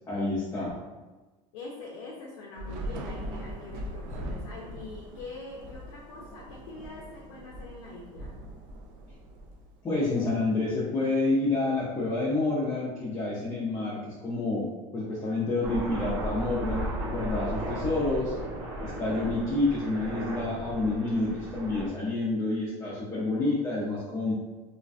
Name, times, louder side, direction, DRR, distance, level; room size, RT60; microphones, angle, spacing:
voice 1, 0.1-0.8 9.8-14.6 14.9-18.4 18.8-24.3, left 2 dB, 20° left, -8 dB, 0.5 m, -28 dB
voice 2, 1.5-8.4, left 3 dB, 90° left, -2 dB, 0.5 m, -44 dB
Thunder / Rain, 2.5-10.1, equal, 55° right, 0.4 m, -40 dB
Aircraft, 15.6-21.9, right 1 dB, 80° right, 1.1 m, -35 dB
2.5 x 2.1 x 2.4 m, 1.2 s
supercardioid pair, 120°, 16 cm